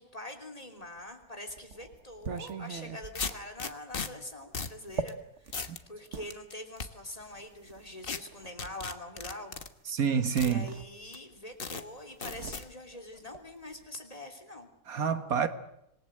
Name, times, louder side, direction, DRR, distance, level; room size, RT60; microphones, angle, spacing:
voice 1, 0.0-9.5 10.3-14.7, left 1 dB, 25° left, 3.2 m, -44 dB
sound 1, 1.0-6.3 7.2-8.6 9.8-9.9 10.2-11.4 11.6-13.9, right 5 dB, 55° right, 1.6 m, -42 dB
sound 2, 2.4-2.5 3.1-4.1 4.5-4.8 5.1-5.2 5.5-5.8 6.3-6.9 8.0-8.2 8.6-9.7 10.4-10.5 11.1-11.2 11.6-11.8 12.2-12.6, left 4 dB, 40° left, 1.5 m, -36 dB
voice 2, 9.9-10.7 14.9-15.5, right 7 dB, 80° right, 1.9 m, -27 dB
26.5 x 20.0 x 7.9 m
omnidirectional pair, 1.5 m